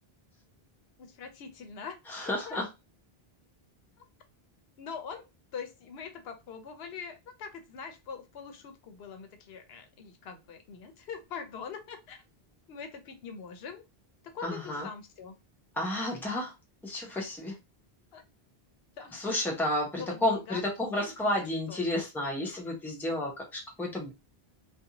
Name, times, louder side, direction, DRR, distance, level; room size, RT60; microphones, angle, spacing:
voice 1, 1.0-2.0 2.3-2.6 4.0-4.1 4.8-5.2 5.5-12.2 12.7-13.8 14.2-15.4 18.1-18.2 19.0-19.2 20.0-20.6 20.9-21.3 21.7-21.8, left 6 dB, 80° left, 7 dB, 0.8 m, -43 dB
voice 2, 2.1-2.7 14.4-14.9 15.8-16.5 16.8-17.5 19.1-24.1, left 1 dB, ahead, -1 dB, 0.6 m, -31 dB
2.6 x 2.3 x 2.8 m, 0.24 s
omnidirectional pair, 1.0 m